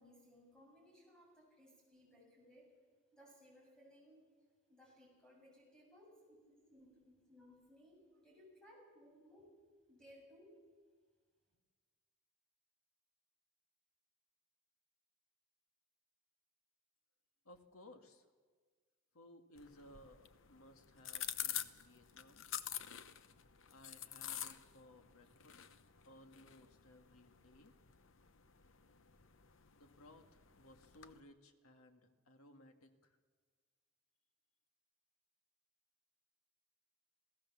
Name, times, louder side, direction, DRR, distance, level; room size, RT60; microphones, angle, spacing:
voice 1, 0.0-2.7 3.1-4.3 4.7-9.5 9.9-10.5, equal, 5° left, -2 dB, 7.1 m, -63 dB
voice 2, 17.5-18.3 19.1-22.4 23.7-25.7 26.0-27.8 29.8-33.2, left 1 dB, 75° left, 6 dB, 1.9 m, -61 dB
sound 1, 19.6-31.2, left 11 dB, 60° left, 0.9 m, -48 dB
27.5 x 16.5 x 7.2 m, 1.5 s
head